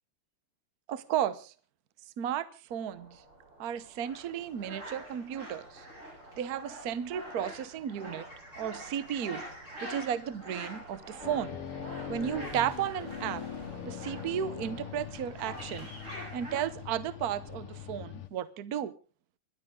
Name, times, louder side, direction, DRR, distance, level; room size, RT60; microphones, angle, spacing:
voice 1, 0.9-1.5 2.2-3.2 3.6-5.8 6.4-8.3 8.6-9.4 9.8-11.6 12.1-13.5 13.8-15.9 16.3-18.9, right 9 dB, 55° right, 16 dB, 1.2 m, -34 dB
sound 1, 2.7-17.9, right 2 dB, 75° right, 6.1 m, -56 dB
sound 2, 4.0-16.6, equal, 35° right, 8.1 m, -46 dB
sound 3, 11.2-18.3, left 9 dB, 85° left, 2.1 m, -42 dB
28.0 x 12.0 x 3.7 m, 0.35 s
omnidirectional pair, 2.4 m